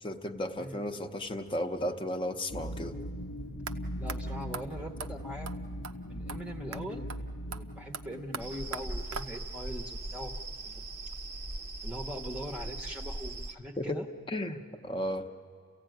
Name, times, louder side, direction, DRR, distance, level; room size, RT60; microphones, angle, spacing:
voice 1, 0.0-2.9 13.8-14.0 14.3-15.3, left 1 dB, 25° left, 5 dB, 0.8 m, -34 dB
voice 2, 0.6-0.9 4.0-5.5 6.1-7.1 7.5-10.3 10.6-10.8 11.8-14.1, equal, 5° right, 1 dB, 0.9 m, -41 dB
sound 1, 2.5-9.2, equal, 90° left, 0.9 m, -40 dB
sound 2, 3.7-3.8 4.1-4.2 4.5-4.6 5.0-5.1 5.4-5.6 5.8-5.9 6.3-6.4 6.7-6.8 7.1-7.2 7.5-9.6, right 6 dB, 90° right, 0.8 m, -41 dB
sound 3, 8.4-13.5, right 1 dB, 30° right, 0.7 m, -39 dB
30.0 x 15.5 x 9.1 m, 2.3 s
head